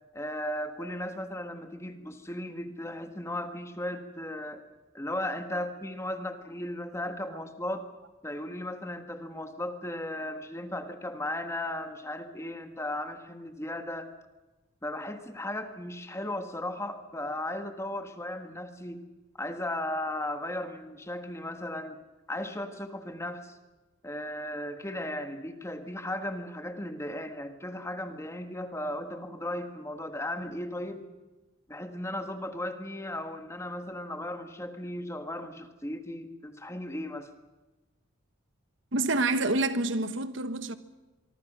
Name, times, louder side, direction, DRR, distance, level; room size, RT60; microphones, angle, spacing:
voice 1, 0.1-4.6 4.9-7.9 8.2-14.1 14.8-19.0 19.4-22.0 22.3-23.6 24.0-31.0 31.7-37.3, left 1 dB, 15° left, 1.5 m, -36 dB
voice 2, 38.9-40.8, right 2 dB, 65° right, 1.4 m, -28 dB
24.5 x 24.5 x 6.2 m
head